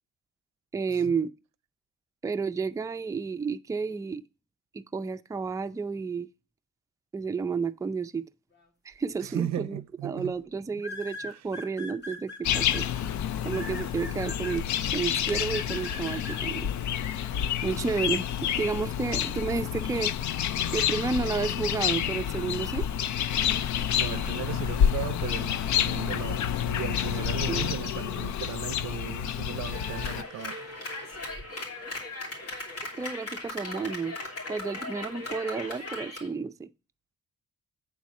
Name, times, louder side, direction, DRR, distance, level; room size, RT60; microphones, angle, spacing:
voice 1, 0.7-1.3 2.2-4.2 4.7-6.3 7.1-8.3 8.8-12.9 13.4-14.6 14.9-16.7 17.6-18.2 18.6-20.1 20.7-22.9 27.3-27.7 33.0-34.1 34.5-36.7, right 5 dB, 10° right, 0.4 m, -31 dB
voice 2, 9.2-10.3 17.3-17.5 18.4-18.8 23.9-30.6, right 12 dB, 65° right, 0.5 m, -37 dB
sound 1, 9.3-9.6 10.8-12.8 13.5-14.6 15.3-16.4, left 2 dB, 35° left, 2.0 m, -40 dB
sound 2, 12.4-30.2, left 9 dB, 70° left, 0.6 m, -29 dB
Clapping, 29.7-36.3, left 2 dB, 50° left, 2.9 m, -38 dB
8.4 x 4.1 x 6.3 m
cardioid pair, 90°, 30 cm